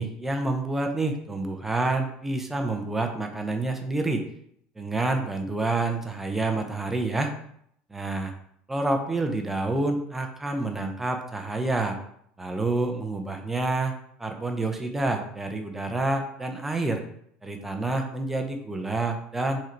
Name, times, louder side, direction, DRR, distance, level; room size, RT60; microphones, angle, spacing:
voice 1, 0.0-4.3 4.8-7.3 7.9-8.3 8.7-12.0 12.4-13.9 14.2-17.0 17.4-19.6, right 2 dB, 10° right, 4 dB, 0.7 m, -28 dB
6.2 x 3.9 x 4.5 m, 0.70 s
cardioid pair, 150°, 3 cm